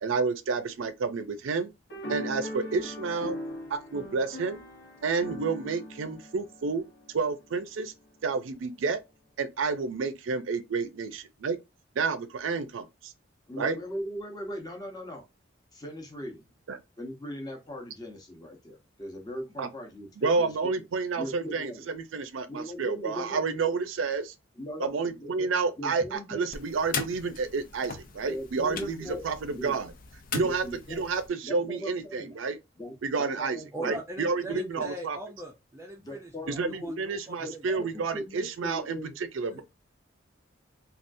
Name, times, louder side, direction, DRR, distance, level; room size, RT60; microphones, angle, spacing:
voice 1, 0.0-1.7 2.1-3.4 3.7-4.6 5.0-6.8 7.1-7.9 8.2-9.0 9.4-11.6 12.0-13.1 13.6-13.8 16.7-16.8 19.6-19.7 20.2-24.3 24.8-29.9 30.3-30.6 30.9-32.6 33.0-35.2 36.5-39.6, right 4 dB, 80° right, 0.5 m, -30 dB
sound 1, 1.9-7.5, left 1 dB, 65° left, 1.0 m, -40 dB
voice 2, 13.5-15.2 15.7-16.4 17.0-20.8 21.2-21.8 22.5-23.7 24.6-25.5 25.8-26.5 28.2-29.2 29.5-29.8 30.4-31.0 31.4-32.4 32.8-34.0 34.5-34.9 36.0-37.0 37.4-39.1, left 1 dB, 20° left, 0.8 m, -39 dB
sound 2, 26.5-31.3, left 5 dB, 45° left, 0.6 m, -39 dB
voice 3, 33.7-37.9 39.5-39.6, right 1 dB, 15° right, 0.4 m, -41 dB
3.4 x 2.3 x 2.5 m
head